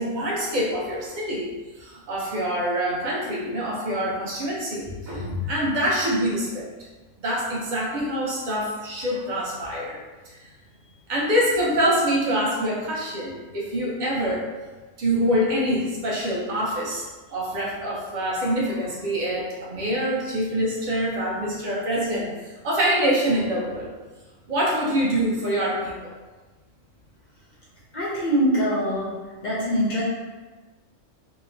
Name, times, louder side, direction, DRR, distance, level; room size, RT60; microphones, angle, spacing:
voice 1, 0.0-1.5 1.8-6.7 7.2-10.0 10.2-10.4 11.1-14.5 15.0-22.3 22.6-23.9 24.5-26.1, equal, 50° right, -4 dB, 0.6 m, -25 dB
voice 2, 27.9-29.1 29.4-30.0, equal, 55° left, -7 dB, 0.5 m, -23 dB
2.8 x 2.0 x 2.6 m, 1.2 s
omnidirectional pair, 1.4 m